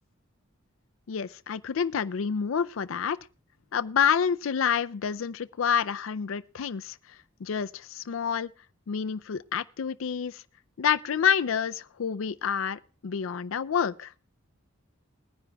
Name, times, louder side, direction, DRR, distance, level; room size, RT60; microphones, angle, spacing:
voice 1, 1.1-3.2 3.7-7.0 7.4-8.5 8.9-10.4 10.8-14.1, left 7 dB, 80° left, 0.4 m, -28 dB
21.0 x 9.9 x 2.3 m
head